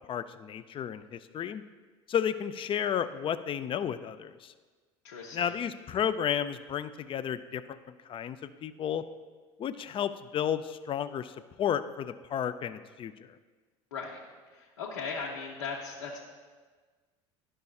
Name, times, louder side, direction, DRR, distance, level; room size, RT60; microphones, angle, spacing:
voice 1, 0.1-1.6 2.1-4.5 5.3-9.0 9.6-13.3, left 9 dB, 35° left, 12 dB, 0.4 m, -32 dB
voice 2, 5.0-5.5 13.9-14.2 14.8-16.2, left 5 dB, 85° left, -3 dB, 0.8 m, -37 dB
11.0 x 5.5 x 2.3 m, 1.4 s
hypercardioid pair, 70°, 15 cm